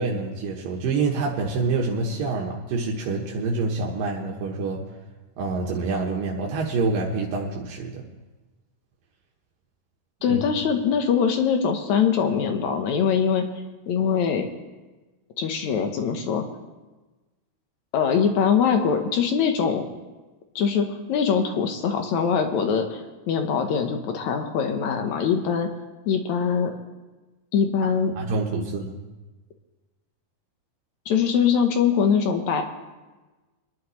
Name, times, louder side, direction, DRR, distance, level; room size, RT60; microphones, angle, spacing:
voice 1, 0.0-4.8 5.4-8.0 10.3-10.4 28.2-29.0, right 3 dB, 80° right, -1 dB, 2.8 m, -26 dB
voice 2, 10.2-13.5 13.9-14.5 15.4-16.4 17.9-19.9 20.6-23.0 23.3-25.7 26.1-26.7 27.5-28.1 31.1-32.6, left 7 dB, 65° left, 5 dB, 2.2 m, -22 dB
24.0 x 11.0 x 3.2 m, 1.2 s
omnidirectional pair, 3.9 m